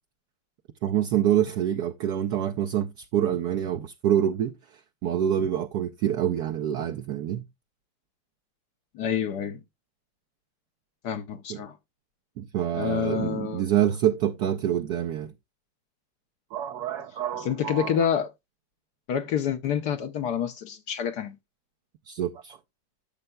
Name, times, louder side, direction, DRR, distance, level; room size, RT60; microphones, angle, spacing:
voice 1, 0.8-7.4 11.5-11.6 12.4-15.3 16.5-18.0 22.1-22.6, right 10 dB, 70° right, 1.1 m, -26 dB
voice 2, 8.9-9.6 11.0-11.8 12.7-13.6 17.4-18.3 19.1-21.3, left 8 dB, 65° left, 1.2 m, -28 dB
12.5 x 6.6 x 2.2 m
omnidirectional pair, 2.1 m